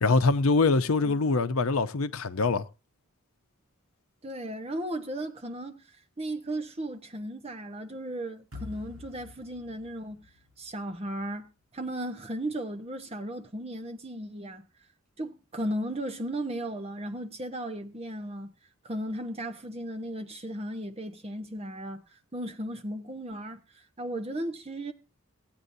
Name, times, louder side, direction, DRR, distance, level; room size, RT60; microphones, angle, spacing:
voice 1, 0.0-2.6, left 3 dB, 75° left, 0.7 m, -24 dB
voice 2, 4.2-5.8 6.2-10.3 10.6-14.6 15.2-18.5 18.8-22.0 22.3-23.6 24.0-24.9, right 1 dB, 30° right, 1.0 m, -35 dB
sound 1, 8.5-11.6, left 3 dB, 75° right, 5.0 m, -47 dB
16.5 x 8.9 x 2.7 m
head